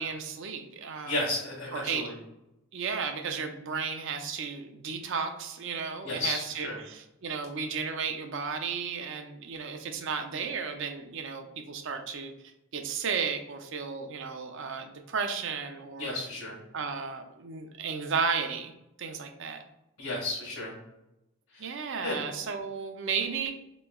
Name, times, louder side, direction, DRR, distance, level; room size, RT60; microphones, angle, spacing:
voice 1, 0.0-1.2 1.7-2.1 2.7-12.3 12.7-16.2 16.7-18.7 19.0-19.6 21.6-23.5, right 5 dB, 60° right, 6 dB, 0.5 m, -34 dB
voice 2, 1.1-2.2 6.0-6.8 16.0-16.6 20.0-20.8 21.5-22.2, left 2 dB, 80° left, -6 dB, 1.2 m, -33 dB
4.3 x 3.0 x 2.3 m, 0.92 s
head